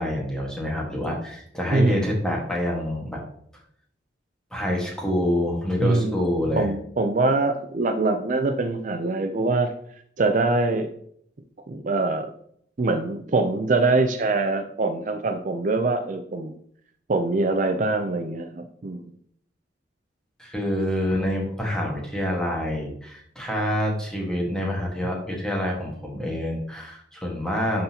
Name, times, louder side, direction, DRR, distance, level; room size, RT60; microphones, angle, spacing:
voice 1, 0.0-3.2 4.5-6.7 20.4-27.8, left 1 dB, 5° left, -2 dB, 1.6 m, -27 dB
voice 2, 1.7-2.1 5.8-6.2 6.6-9.7 10.2-10.9 11.7-12.3 12.8-16.5 17.1-19.0, right 3 dB, 45° right, 6 dB, 0.5 m, -23 dB
11.0 x 3.9 x 2.9 m, 0.66 s
head